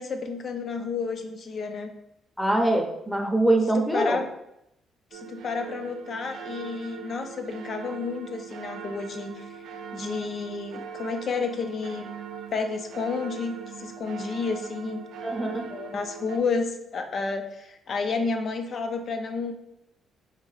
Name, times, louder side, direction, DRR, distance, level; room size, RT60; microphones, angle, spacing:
voice 1, 0.0-1.9 3.9-4.3 5.1-9.5 9.9-12.1 12.5-15.0 15.7-19.5, left 4 dB, 50° left, 6 dB, 0.5 m, -31 dB
voice 2, 2.4-4.2 15.2-15.7, right 1 dB, ahead, 2 dB, 0.7 m, -23 dB
sound 1, 5.1-16.4, right 6 dB, 80° right, 0.3 m, -40 dB
3.7 x 2.6 x 3.2 m, 0.81 s
cardioid pair, 90°, 0 cm